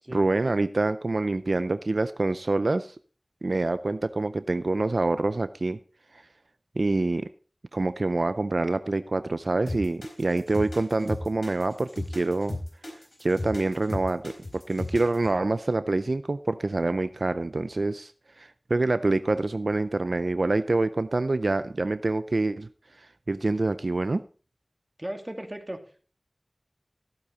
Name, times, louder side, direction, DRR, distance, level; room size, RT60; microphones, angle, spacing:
voice 1, 0.1-3.0 3.4-5.8 6.1-6.2 6.8-7.3 7.7-12.6 13.2-18.1 18.4-22.7 23.0-24.2, right 2 dB, 85° right, 13 dB, 0.5 m, -26 dB
sound 1, 9.7-15.3, left 1 dB, 65° left, 4.2 m, -35 dB
voice 2, 25.0-25.8, right 1 dB, 25° right, 5 dB, 2.4 m, -36 dB
15.0 x 8.5 x 4.0 m, 0.39 s
wide cardioid pair, 40°, 0 cm